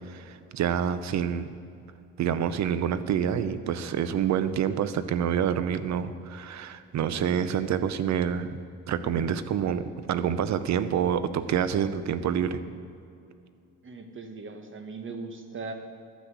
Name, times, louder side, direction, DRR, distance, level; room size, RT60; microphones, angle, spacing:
voice 1, 0.1-1.5 2.2-8.5 8.9-12.6, right 8 dB, 65° right, 13 dB, 0.8 m, -27 dB
voice 2, 13.8-15.7, right 4 dB, 40° right, 6 dB, 1.5 m, -39 dB
12.0 x 6.1 x 8.2 m, 2.5 s
cardioid pair, 90°, 30 cm